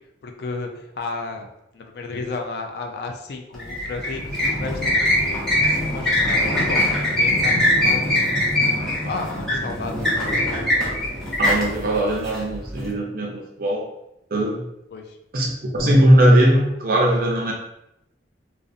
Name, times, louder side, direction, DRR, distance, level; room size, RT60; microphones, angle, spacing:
voice 1, 0.2-1.5 1.7-8.3 9.0-10.6 14.9-15.2, left 3 dB, 55° left, 3 dB, 0.3 m, -33 dB
sound 1, 3.5-12.9, left 1 dB, 5° left, 0.6 m, -22 dB
voice 2, 11.4-13.9 14.3-14.6 15.3-17.5, right 1 dB, 50° right, 0 dB, 0.5 m, -19 dB
2.4 x 2.0 x 2.6 m, 0.84 s
head